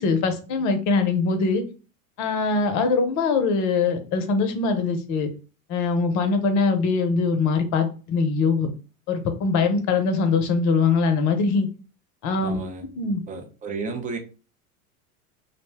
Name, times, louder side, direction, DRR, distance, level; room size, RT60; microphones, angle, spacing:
voice 1, 0.0-1.6 2.2-5.3 5.7-8.7 9.1-11.7 12.2-12.6 13.0-13.2, left 4 dB, 40° left, 0.7 m, -22 dB
voice 2, 12.4-12.9 13.3-14.2, right 4 dB, 20° right, 0.5 m, -32 dB
2.6 x 2.1 x 3.3 m
hypercardioid pair, 95°, 44 cm